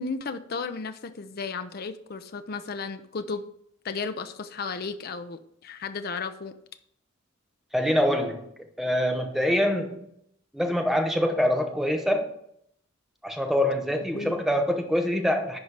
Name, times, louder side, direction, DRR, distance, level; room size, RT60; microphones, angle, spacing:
voice 1, 0.0-3.4 3.8-6.5 14.1-14.4, left 4 dB, 50° left, 9 dB, 0.5 m, -34 dB
voice 2, 7.7-8.5 8.8-10.0 10.5-12.3 13.2-15.6, equal, ahead, 4 dB, 0.9 m, -25 dB
11.0 x 4.2 x 4.7 m, 0.71 s
head